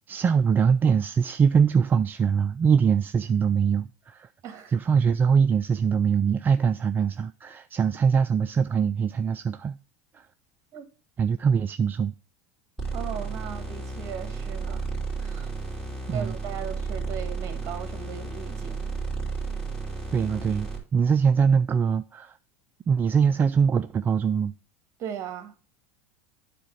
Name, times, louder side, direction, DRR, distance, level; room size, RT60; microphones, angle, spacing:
voice 1, 0.1-4.3 4.7-9.8 11.2-12.1 16.1-16.3 20.1-22.3 22.9-24.5, right 6 dB, 25° right, 0.4 m, -23 dB
voice 2, 4.4-4.8 10.7-10.9 12.9-14.9 15.2-15.5 16.1-18.8 25.0-25.5, right 8 dB, 45° right, 1.5 m, -37 dB
sound 1, 12.8-20.8, right 4 dB, 10° left, 3.2 m, -33 dB
9.3 x 3.8 x 5.0 m
hypercardioid pair, 100°, 7 cm